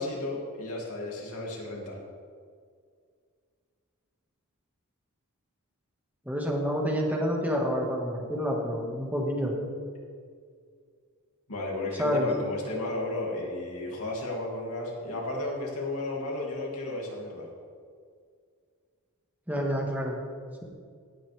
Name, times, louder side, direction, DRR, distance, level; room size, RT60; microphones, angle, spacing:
voice 1, 0.0-2.0 11.5-17.5, left 2 dB, 70° left, -2 dB, 2.7 m, -33 dB
voice 2, 6.3-9.5 12.0-12.3 19.5-20.2, equal, 10° right, -1 dB, 1.8 m, -28 dB
17.5 x 8.4 x 3.5 m, 2.1 s
head